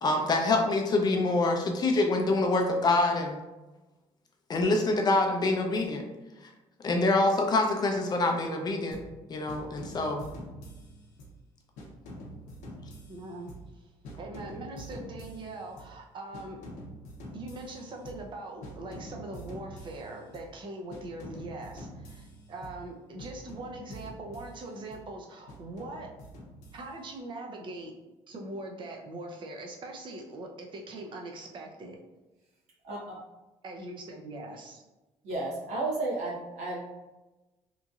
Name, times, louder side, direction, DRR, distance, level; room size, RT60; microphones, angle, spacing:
voice 1, 0.0-3.4 4.5-6.0 6.8-9.0 9.3-10.3, left 2 dB, 35° left, 3 dB, 0.5 m, -25 dB
sound 1, 8.9-9.2 9.5-11.4 11.8-13.8 14.0-16.0 16.3-18.3 18.6-20.6 20.9-22.9 23.2-25.1 25.5-27.1, equal, 85° left, 0.6 m, -46 dB
voice 2, 13.1-13.9 14.2-16.6 17.3-26.1 26.7-27.9 28.3-32.0 33.6-34.8, right 2 dB, 45° right, 1 dB, 0.6 m, -41 dB
voice 3, 35.2-36.8, right 2 dB, 85° right, -5 dB, 0.9 m, -32 dB
3.0 x 2.6 x 2.4 m, 1.1 s
cardioid pair, 110°, 12 cm